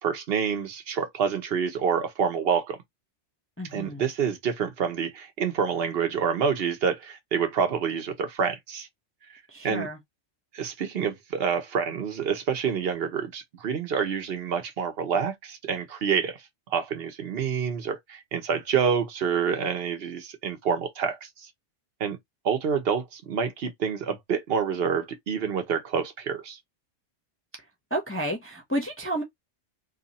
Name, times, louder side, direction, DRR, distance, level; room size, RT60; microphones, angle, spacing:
voice 1, 0.0-2.8 3.7-8.9 9.6-9.9 10.5-16.4 16.7-21.5 22.0-22.2 22.4-26.6, right 6 dB, 55° right, 1.1 m, -27 dB
voice 2, 3.6-4.0 9.5-10.0 27.9-29.2, right 1 dB, 15° left, 0.6 m, -31 dB
2.8 x 2.7 x 4.0 m
omnidirectional pair, 1.3 m